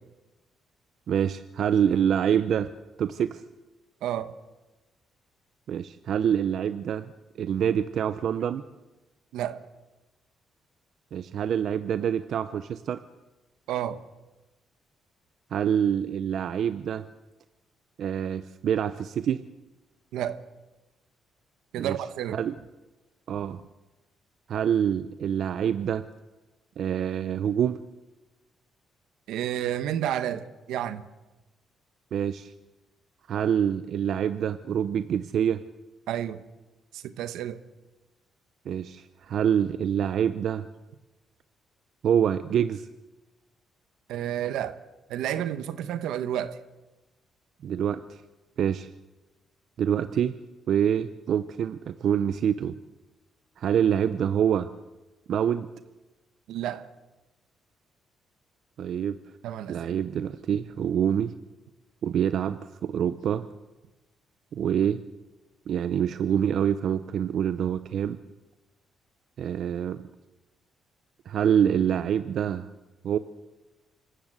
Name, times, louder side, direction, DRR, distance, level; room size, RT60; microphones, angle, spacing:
voice 1, 1.1-2.7 3.0-3.4 5.7-7.1 7.4-8.6 11.1-13.0 15.5-17.0 18.0-19.4 21.8-22.0 22.3-22.5 23.3-23.6 24.5-26.1 26.8-27.8 32.1-32.5 33.3-35.6 38.7-40.7 42.0-42.9 47.6-48.2 48.6-48.9 49.8-50.3 50.7-52.8 53.6-54.7 55.3-55.7 58.8-59.2 59.7-61.3 62.0-63.5 64.5-65.0 65.7-68.2 69.4-70.1 71.3-72.7 73.0-73.2, right 9 dB, 65° right, 0.7 m, -26 dB
voice 2, 4.0-4.3 9.3-9.6 13.7-14.0 20.1-20.4 21.7-22.4 29.3-31.0 36.1-36.4 36.9-37.6 44.1-44.8 45.1-46.6 56.5-56.9 59.4-60.0, right 11 dB, 85° right, 1.3 m, -31 dB
25.5 x 14.5 x 8.2 m
cardioid pair, 90°, 0 cm